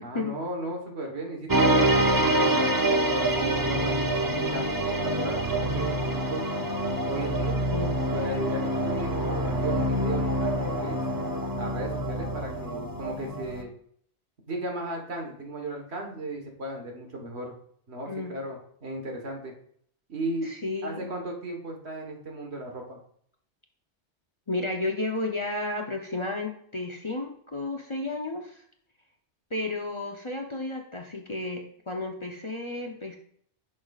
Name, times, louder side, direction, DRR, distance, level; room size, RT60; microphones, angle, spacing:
voice 1, 0.0-6.7 7.1-7.6 8.1-11.0 11.6-13.7 14.5-17.5 17.9-19.5 20.1-20.5 20.8-23.0, right 1 dB, 70° right, 2 dB, 1.7 m, -36 dB
sound 1, 1.5-13.6, right 1 dB, 25° right, 0.5 m, -26 dB
voice 2, 7.6-8.0 18.1-18.3 20.4-21.1 24.5-28.6 29.5-33.2, left 2 dB, 30° left, 1 dB, 0.7 m, -32 dB
10.5 x 6.3 x 2.4 m, 0.63 s
omnidirectional pair, 1.1 m